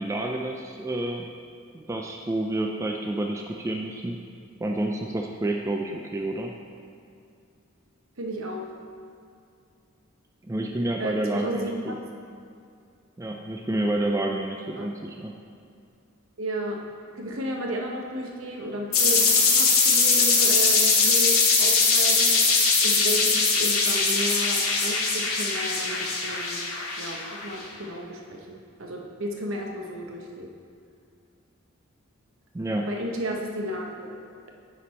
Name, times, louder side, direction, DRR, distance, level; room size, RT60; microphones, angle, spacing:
voice 1, 0.0-1.3 1.7-4.2 4.6-6.5 10.5-12.0 13.2-15.3 32.5-32.9, right 1 dB, 15° right, 1 dB, 0.3 m, -29 dB
voice 2, 8.2-8.7 11.0-12.0 14.8-14.9 16.4-16.8 17.1-22.3 22.8-26.6 27.0-30.5 32.9-34.1, equal, 65° right, 1 dB, 0.9 m, -33 dB
sound 1, 18.9-27.4, left 4 dB, 80° left, 1.3 m, -21 dB
9.6 x 4.2 x 4.2 m, 2.4 s
head